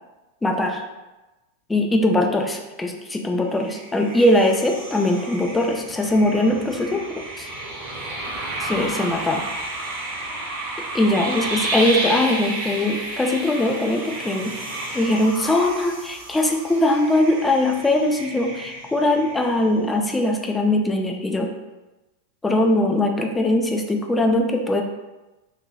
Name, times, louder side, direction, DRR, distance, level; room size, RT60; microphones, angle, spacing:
voice 1, 0.4-0.8 1.7-7.0 7.4-7.5 8.6-9.5 10.9-14.5 14.9-21.5 22.4-24.8, left 1 dB, 10° left, 3 dB, 0.4 m, -21 dB
sound 1, 3.5-19.8, right 2 dB, 40° right, 0.7 m, -32 dB
3.0 x 2.6 x 2.5 m, 1.1 s
figure-of-eight pair, 90°, 0 cm